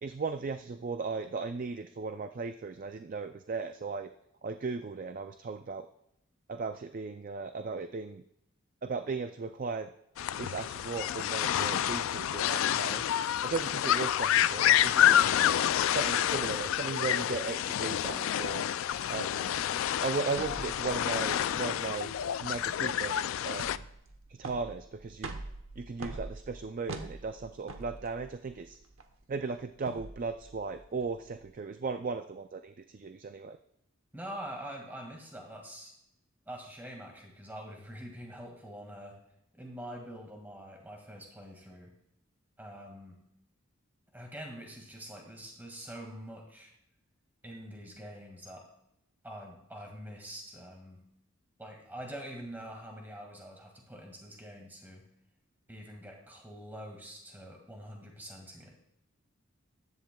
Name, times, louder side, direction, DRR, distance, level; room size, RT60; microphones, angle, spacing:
voice 1, 0.0-4.1 4.4-5.9 6.5-8.2 8.8-9.9 10.4-13.0 13.4-15.3 15.9-18.6 19.1-19.5 20.0-22.1 22.4-23.2 23.5-23.9 24.3-25.4 25.8-28.8 29.3-33.6, right 4 dB, 40° right, 8 dB, 0.3 m, -36 dB
sound 1, 10.2-23.8, left 10 dB, 70° left, 0.3 m, -28 dB
sound 2, 20.3-31.5, right 2 dB, 70° right, 1.0 m, -45 dB
voice 2, 34.1-35.9 36.5-39.2 39.5-41.9 42.6-43.2 44.1-46.7 47.4-48.6 49.2-51.0 51.6-55.0 55.7-58.8, equal, 10° right, 1 dB, 1.9 m, -45 dB
14.5 x 10.5 x 2.3 m, 0.78 s
head